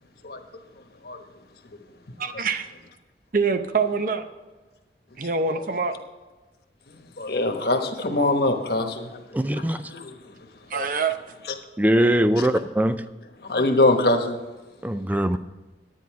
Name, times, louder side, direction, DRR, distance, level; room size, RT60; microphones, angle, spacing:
voice 1, 2.2-2.7 3.3-4.3 5.2-5.9 10.7-11.4, right 5 dB, 50° right, 8 dB, 0.7 m, -25 dB
voice 2, 6.9-9.2 9.5-10.2 10.7-10.9 12.4-12.5 13.4-14.4 15.2-15.3, left 2 dB, 60° left, 5 dB, 1.2 m, -24 dB
voice 3, 9.3-9.8 11.8-13.0 14.8-15.4, right 1 dB, 10° right, 12 dB, 0.4 m, -21 dB
10.5 x 9.5 x 4.7 m, 1.2 s
head